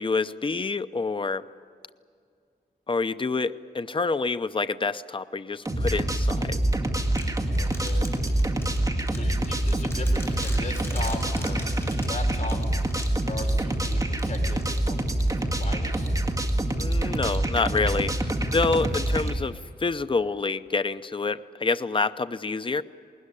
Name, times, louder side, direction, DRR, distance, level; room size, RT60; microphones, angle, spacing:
voice 1, 0.0-1.5 2.9-6.6 16.8-18.1 18.5-22.8, left 4 dB, 30° left, 13 dB, 0.6 m, -27 dB
sound 1, 5.7-19.4, right 1 dB, 20° right, 1.9 m, -26 dB
sound 2, 7.2-15.6, left 1 dB, 15° left, 5.4 m, -44 dB
voice 2, 7.5-8.1 9.1-11.6 12.0-15.1 15.4-16.2, left 3 dB, 45° left, 3 dB, 4.6 m, -38 dB
20.5 x 20.0 x 10.0 m, 2.3 s
wide cardioid pair, 90°, 17 cm